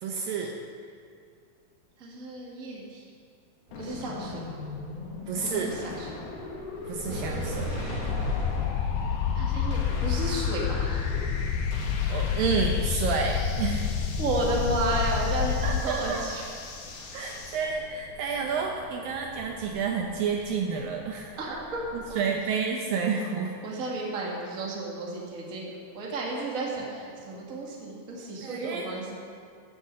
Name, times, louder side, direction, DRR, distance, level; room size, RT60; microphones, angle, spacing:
voice 1, 0.0-0.5 5.3-5.7 6.9-7.7 12.1-13.9 15.6-16.5 17.1-21.4 22.2-23.5 28.4-28.9, right 5 dB, 75° right, 1 dB, 2.3 m, -30 dB
voice 2, 2.0-3.1 3.7-4.6 5.4-6.1 9.3-11.1 14.2-16.4 17.1-17.2 21.4-22.3 23.6-29.1, right 2 dB, 30° right, -3 dB, 1.7 m, -33 dB
sound 1, 3.7-17.7, left 4 dB, 70° left, 3.1 m, -41 dB
sound 2, 3.7-22.2, equal, 50° right, 4.0 m, -42 dB
sound 3, 8.0-15.8, left 7 dB, 85° left, 1.9 m, -28 dB
12.0 x 8.3 x 7.5 m, 2.3 s
omnidirectional pair, 4.6 m